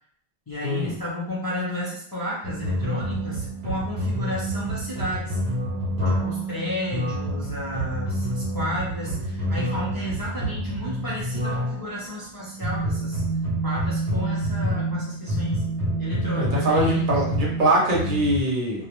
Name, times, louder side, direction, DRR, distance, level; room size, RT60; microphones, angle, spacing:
voice 1, 0.5-5.4 6.2-13.2 13.6-15.7 16.0-17.1, left 1 dB, 30° left, -8 dB, 0.5 m, -32 dB
sound 1, 2.4-18.4, right 1 dB, 85° right, 0.9 m, -28 dB
voice 2, 16.4-18.9, right 1 dB, 55° right, -3 dB, 0.8 m, -23 dB
2.4 x 2.1 x 2.9 m, 0.64 s
omnidirectional pair, 1.0 m